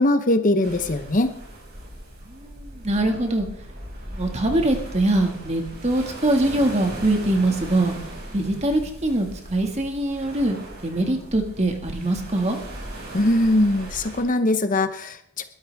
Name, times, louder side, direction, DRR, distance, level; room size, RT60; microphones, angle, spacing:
voice 1, 0.0-1.3 13.1-15.4, left 1 dB, 35° left, 9 dB, 0.8 m, -21 dB
sound 1, 0.6-14.2, right 1 dB, 45° right, 6.3 m, -38 dB
voice 2, 2.3-3.5 4.1-7.9 8.3-12.6, right 1 dB, 30° right, 3 dB, 2.0 m, -23 dB
21.5 x 12.5 x 3.5 m, 0.69 s
head